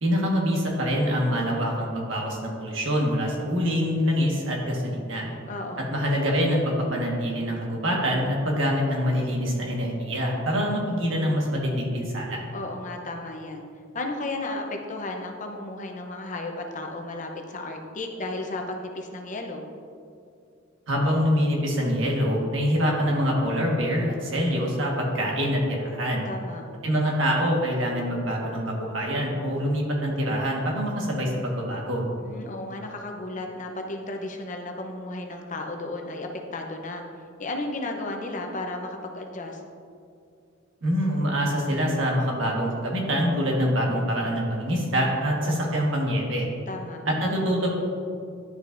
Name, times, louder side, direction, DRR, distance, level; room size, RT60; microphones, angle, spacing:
voice 1, 0.0-5.3 5.9-12.4 20.9-26.3 26.8-32.0 40.8-46.5 47.0-47.7, equal, 75° right, -1 dB, 1.5 m, -25 dB
voice 2, 5.5-5.9 12.5-13.7 13.9-19.7 26.3-26.6 32.2-37.0 37.4-39.6 46.7-47.0, left 2 dB, 40° left, 3 dB, 0.7 m, -34 dB
11.0 x 5.3 x 2.6 m, 2.4 s
head